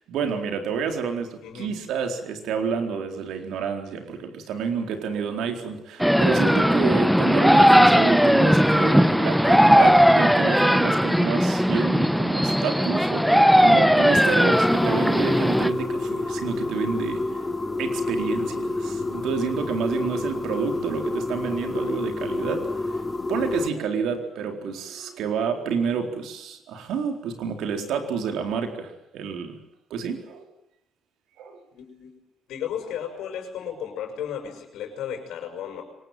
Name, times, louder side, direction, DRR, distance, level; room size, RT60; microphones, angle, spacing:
voice 1, 0.1-17.4 17.8-23.0 23.3-29.6 29.9-30.5 31.4-31.6, right 6 dB, 85° right, 5 dB, 4.1 m, -29 dB
voice 2, 1.4-1.8 31.8-32.1 32.5-35.8, left 9 dB, 85° left, 3 dB, 5.8 m, -34 dB
sound 1, 6.0-15.7, equal, ahead, 1.1 m, -18 dB
sound 2, 14.5-23.7, left 2 dB, 20° left, 2.6 m, -29 dB
23.5 x 20.0 x 9.2 m, 0.80 s
cardioid pair, 90°, 0 cm